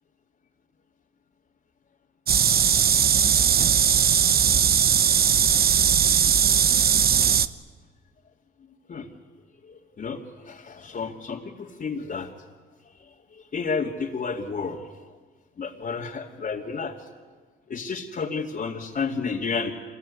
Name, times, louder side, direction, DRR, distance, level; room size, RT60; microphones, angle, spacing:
sound 1, 2.3-7.5, right 8 dB, 50° right, 1.0 m, -19 dB
voice 1, 9.6-12.3 13.3-14.8 15.6-17.0 17.7-19.7, left 5 dB, 45° left, -3 dB, 2.4 m, -31 dB
26.5 x 22.0 x 9.8 m, 1.4 s
cardioid pair, 90°, 20 cm